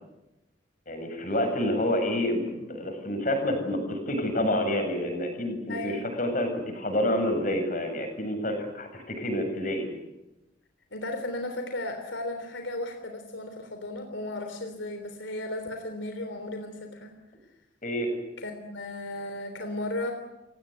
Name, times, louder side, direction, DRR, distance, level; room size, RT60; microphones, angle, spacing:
voice 1, 0.9-9.9 17.8-18.1, left 1 dB, 45° left, 5 dB, 7.8 m, -28 dB
voice 2, 5.7-6.1 10.9-17.2 18.4-20.1, left 1 dB, 80° left, 6 dB, 3.4 m, -35 dB
29.5 x 18.0 x 9.5 m, 0.95 s
head